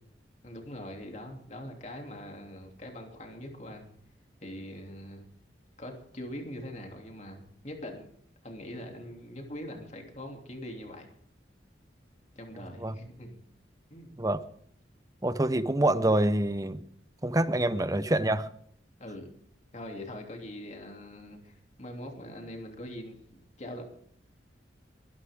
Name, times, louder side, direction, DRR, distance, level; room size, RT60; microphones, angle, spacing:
voice 1, 0.4-3.9 4.4-5.3 5.8-8.1 8.4-11.1 12.4-13.4 13.9-14.1 19.0-19.3 19.7-21.5 21.8-23.8, left 1 dB, 40° left, 2.9 m, -42 dB
voice 2, 15.2-16.8 17.2-18.5, right 1 dB, 20° right, 0.8 m, -26 dB
23.0 x 13.0 x 3.7 m
head